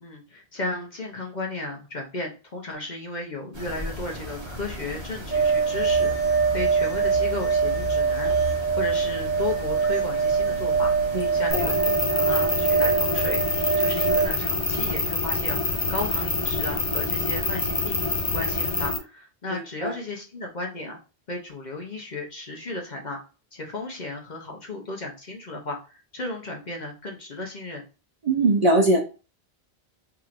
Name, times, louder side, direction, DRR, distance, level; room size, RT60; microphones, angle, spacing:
voice 1, 0.0-8.3 8.7-18.0 18.3-21.0 21.3-23.2 23.5-27.8, left 2 dB, 50° left, 0 dB, 0.8 m, -34 dB
sound 1, 3.5-18.9, equal, 30° right, 0.9 m, -36 dB
sound 2, 5.3-14.3, right 5 dB, 65° left, 1.2 m, -23 dB
voice 2, 11.1-11.7 19.5-19.9 28.2-29.0, right 2 dB, 45° right, 0 dB, 0.6 m, -22 dB
sound 3, 11.5-19.0, left 3 dB, 30° left, 0.4 m, -26 dB
4.6 x 2.9 x 2.4 m, 0.33 s
omnidirectional pair, 1.0 m